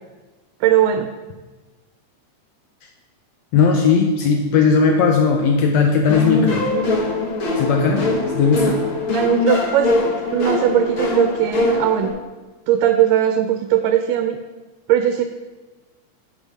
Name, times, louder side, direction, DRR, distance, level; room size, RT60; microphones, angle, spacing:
voice 1, 0.6-1.1 9.1-10.0 10.3-12.1 12.7-14.4 14.9-15.2, right 10 dB, 80° right, 8 dB, 2.1 m, -18 dB
voice 2, 3.5-6.7 7.6-8.8, left 5 dB, 85° left, 2 dB, 1.6 m, -17 dB
sound 1, 6.1-12.1, left 2 dB, 55° left, 1.5 m, -22 dB
9.1 x 5.1 x 5.5 m, 1.2 s
omnidirectional pair, 3.9 m